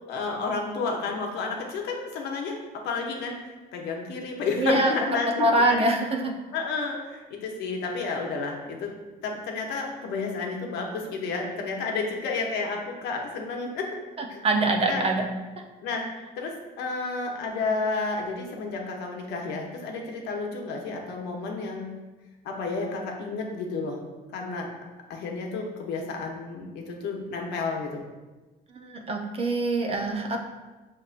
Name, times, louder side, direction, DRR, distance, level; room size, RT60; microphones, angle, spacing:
voice 1, 0.1-2.6 2.8-3.4 3.7-5.8 6.5-8.9 9.2-13.9 14.3-14.4 14.8-15.0 15.8-16.1 16.4-21.9 22.4-24.0 24.3-24.7 25.1-28.0, left 4 dB, 80° left, 1 dB, 0.8 m, -31 dB
voice 2, 4.6-4.9 5.4-6.3 14.2-15.2 28.7-30.4, right 2 dB, 35° right, 2 dB, 0.6 m, -24 dB
6.5 x 2.9 x 2.5 m, 1.2 s
cardioid pair, 110°, 17 cm